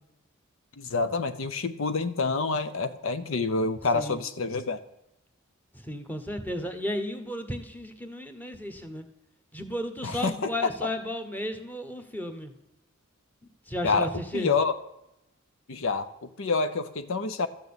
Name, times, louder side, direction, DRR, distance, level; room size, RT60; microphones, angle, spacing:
voice 1, 0.8-4.8 10.0-10.7 13.8-14.7 15.7-17.5, left 4 dB, 65° left, 10 dB, 0.7 m, -28 dB
voice 2, 5.7-9.1 9.5-12.5 13.7-14.5, left 1 dB, 10° left, 6 dB, 1.2 m, -34 dB
13.5 x 6.5 x 8.7 m, 0.85 s
head